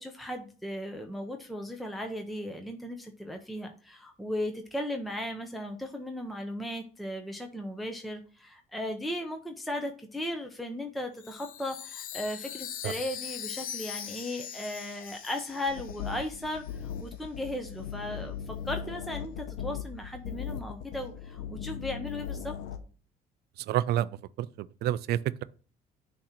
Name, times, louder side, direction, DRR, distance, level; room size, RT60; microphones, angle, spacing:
voice 1, 0.0-22.5, left 1 dB, ahead, 0.7 m, -36 dB
Chime, 11.2-16.7, left 9 dB, 60° left, 0.6 m, -41 dB
sound 1, 15.7-22.8, left 8 dB, 85° left, 0.8 m, -38 dB
voice 2, 23.6-25.4, right 12 dB, 70° right, 0.4 m, -29 dB
6.4 x 2.9 x 5.7 m
cardioid pair, 110°, 17 cm